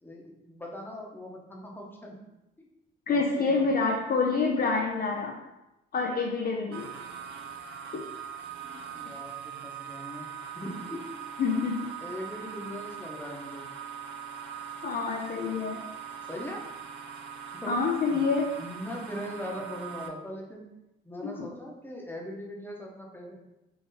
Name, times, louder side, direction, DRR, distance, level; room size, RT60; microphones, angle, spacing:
voice 1, 0.0-2.2 2.6-2.7 3.1-3.7 8.6-10.3 10.5-11.0 12.0-13.7 16.2-16.6 17.6-18.2 18.6-20.7 21.0-23.3, equal, 10° left, -1 dB, 0.9 m, -40 dB
voice 2, 3.1-5.4 5.9-6.9 11.4-11.9 14.8-15.8 17.7-18.5 21.2-21.5, left 4 dB, 50° left, 1 dB, 0.6 m, -27 dB
sound 1, 6.7-20.1, right 7 dB, 65° right, 0.5 m, -41 dB
3.9 x 2.8 x 4.1 m, 0.94 s
cardioid pair, 90°, 20 cm